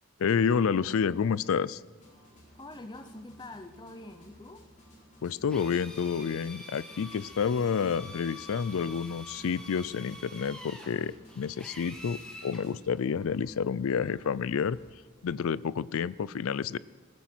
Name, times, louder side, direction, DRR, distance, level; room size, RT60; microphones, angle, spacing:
voice 1, 0.2-1.8 5.2-14.8 15.2-16.8, left 6 dB, 65° left, 19 dB, 0.4 m, -29 dB
sound 1, 2.0-14.9, equal, 35° left, 4.5 m, -56 dB
voice 2, 2.5-4.7, left 2 dB, 20° left, 8 dB, 0.8 m, -45 dB
Drill, 5.5-12.6, left 1 dB, 5° left, 2.0 m, -46 dB
20.5 x 14.5 x 4.5 m, 1.4 s
head